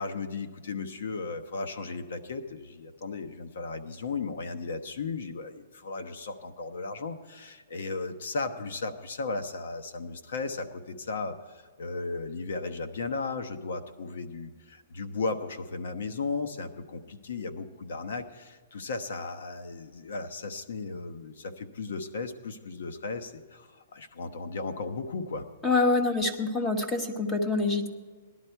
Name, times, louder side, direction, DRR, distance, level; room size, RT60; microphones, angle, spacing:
voice 1, 0.0-25.5, left 3 dB, 75° left, 9 dB, 1.0 m, -35 dB
voice 2, 25.6-27.9, left 3 dB, 15° left, 5 dB, 1.2 m, -26 dB
18.0 x 11.5 x 4.6 m, 1.5 s
hypercardioid pair, 165°, 0 cm